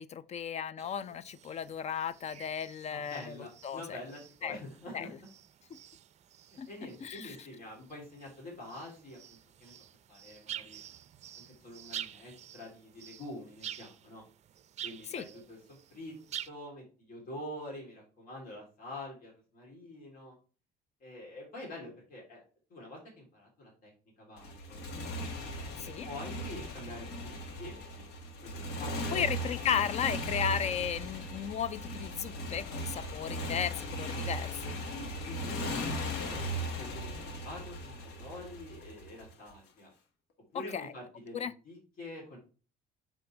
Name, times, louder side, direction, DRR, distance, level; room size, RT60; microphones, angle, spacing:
voice 1, 0.0-3.4 3.6-4.0 4.4-4.6 4.9-5.1 6.6-6.7 7.0-7.4 15.1-15.2 25.8-26.1 29.1-34.8 40.7-40.9 41.3-41.5, left 8 dB, 40° left, 0.5 m, -35 dB
sound 1, 0.8-16.5, right 10 dB, 40° right, 0.4 m, -48 dB
voice 2, 2.9-5.3 6.7-9.7 10.1-10.8 11.3-14.2 14.8-16.1 16.5-20.3 21.0-22.4 22.7-23.9 24.2-24.9 25.6-28.0 28.4-29.3 34.8-39.9 40.5-42.4, left 1 dB, 55° left, 3.2 m, -46 dB
Motorcycle, 24.4-39.5, equal, 85° left, 1.2 m, -38 dB
6.1 x 5.5 x 3.3 m
cardioid pair, 110°, 17 cm